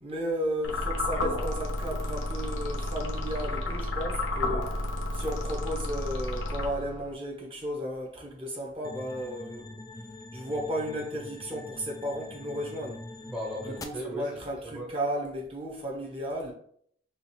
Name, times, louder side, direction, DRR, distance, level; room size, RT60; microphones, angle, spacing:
voice 1, 0.0-4.7 5.1-9.8 10.3-13.0 13.8-16.5, equal, 30° right, 1.0 m, -34 dB
sound 1, 0.6-7.1, left 1 dB, 90° left, 0.8 m, -31 dB
sound 2, 8.8-13.8, left 2 dB, 20° left, 0.3 m, -44 dB
voice 2, 13.2-14.9, equal, 5° right, 0.8 m, -37 dB
5.9 x 2.5 x 3.1 m
head